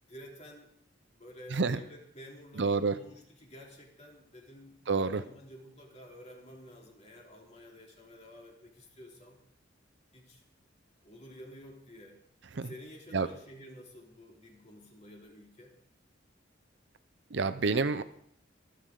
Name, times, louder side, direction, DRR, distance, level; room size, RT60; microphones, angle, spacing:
voice 1, 0.0-0.7 1.1-4.8 5.1-9.4 10.1-10.4 11.0-12.2 12.6-15.8, equal, 35° left, -1 dB, 3.1 m, -51 dB
voice 2, 2.6-2.9 4.9-5.2 12.6-12.7 13.1-13.3 17.3-18.0, right 4 dB, 60° right, 12 dB, 0.7 m, -28 dB
24.0 x 8.6 x 3.8 m, 0.67 s
head